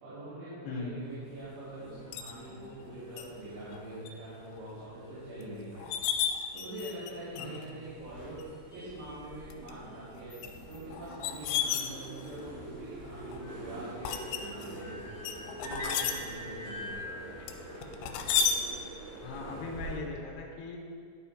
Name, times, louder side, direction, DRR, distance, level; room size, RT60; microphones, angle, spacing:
voice 1, 0.0-5.9 6.5-8.4 8.7-10.4 10.6-15.0 15.5-17.2, right 1 dB, 75° right, -11 dB, 4.3 m, -44 dB
sound 1, 1.0-19.2, left 1 dB, 50° left, 1.4 m, -49 dB
sound 2, 1.2-20.0, right 2 dB, 50° right, 3.0 m, -47 dB
sound 3, 2.1-2.3 3.2-3.3 3.7-4.1 4.5-4.6 5.4-5.5 5.8-7.1 7.4-7.7 8.4-8.5 9.3-9.7 10.4-12.4 13.0-13.4 14.0-14.8 15.2-16.1 17.5-18.6, left 8 dB, 85° left, 3.1 m, -32 dB
voice 2, 19.2-20.8, left 3 dB, 70° left, -1 dB, 2.7 m, -39 dB
12.0 x 6.7 x 2.8 m, 2.2 s
omnidirectional pair, 5.7 m